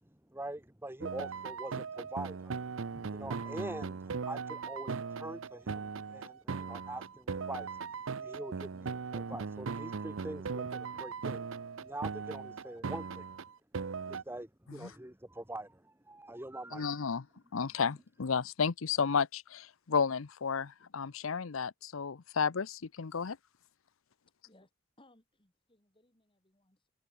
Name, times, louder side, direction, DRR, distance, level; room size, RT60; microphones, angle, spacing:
voice 1, 0.3-2.6 2.9-11.5 11.8-13.3 14.1-17.0, right 1 dB, 10° right, 1.4 m, -44 dB
sound 1, 1.0-14.2, right 5 dB, 75° right, 0.6 m, -39 dB
voice 2, 16.7-17.2 17.5-23.4, left 6 dB, 85° left, 0.7 m, -32 dB
voice 3, 24.3-24.7 25.0-26.9, left 1 dB, 25° left, 5.4 m, -65 dB
open air
head